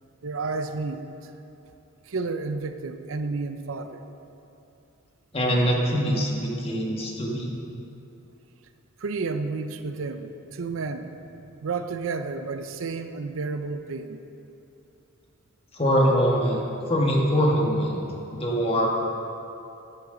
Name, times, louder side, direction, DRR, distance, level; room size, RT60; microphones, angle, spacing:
voice 1, 0.2-1.1 2.1-4.0 9.0-11.1 11.6-14.2, right 4 dB, 80° right, 9 dB, 0.6 m, -31 dB
voice 2, 5.3-7.5 15.7-18.0 18.3-18.9, equal, 30° left, -2 dB, 1.5 m, -23 dB
13.5 x 10.5 x 3.9 m, 2.9 s
head